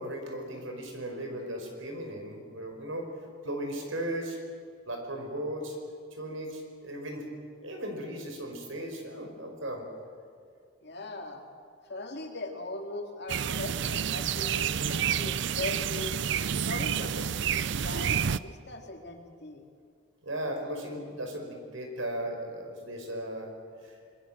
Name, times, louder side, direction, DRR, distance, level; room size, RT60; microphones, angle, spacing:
voice 1, 0.0-3.1 3.4-4.4 4.9-5.8 6.1-7.2 7.6-9.9 20.2-23.5 23.8-24.0, right 1 dB, 75° right, 3 dB, 5.3 m, -36 dB
voice 2, 10.8-11.4 11.9-16.2 16.7-19.6, left 2 dB, 55° left, 3 dB, 2.7 m, -40 dB
sound 1, 13.3-18.4, right 8 dB, 60° right, 0.5 m, -29 dB
26.0 x 21.5 x 7.5 m, 2.2 s
head